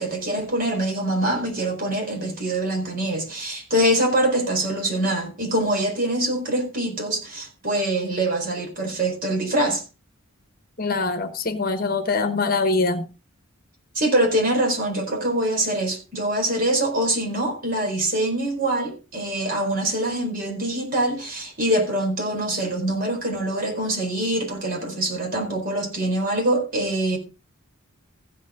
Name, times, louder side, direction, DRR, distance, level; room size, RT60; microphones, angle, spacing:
voice 1, 0.0-9.8 13.9-27.2, right 1 dB, 40° right, 4.6 m, -24 dB
voice 2, 10.8-13.0, left 3 dB, 40° left, 1.2 m, -23 dB
15.0 x 8.5 x 3.8 m
head